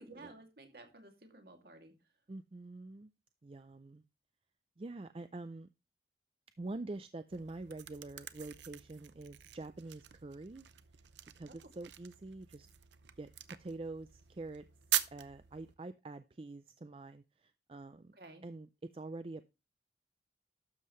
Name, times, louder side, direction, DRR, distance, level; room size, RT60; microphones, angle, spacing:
voice 1, 0.0-1.9 11.5-11.6 18.2-18.5, right 2 dB, 55° right, 4 dB, 2.4 m, -54 dB
voice 2, 2.3-3.1 3.4-4.0 4.8-5.7 6.6-10.7 11.4-12.7 13.2-13.3 13.6-14.6 15.1-18.1 18.4-19.4, right 2 dB, 30° right, 11 dB, 0.4 m, -46 dB
sound 1, 7.3-15.7, right 12 dB, 85° right, 0.8 m, -43 dB
12.0 x 7.5 x 3.2 m, 0.27 s
head